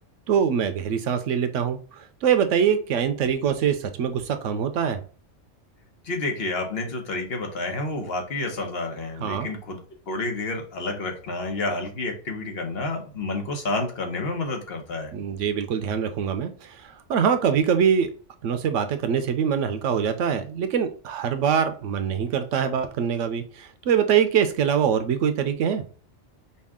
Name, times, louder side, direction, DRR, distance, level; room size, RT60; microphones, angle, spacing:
voice 1, 0.3-5.0 9.2-9.5 15.1-18.1 18.4-25.8, right 7 dB, 90° right, 9 dB, 1.0 m, -24 dB
voice 2, 6.0-9.8 10.1-15.1, left 2 dB, 55° left, 3 dB, 1.1 m, -29 dB
5.4 x 2.3 x 3.6 m, 0.38 s
omnidirectional pair, 1.2 m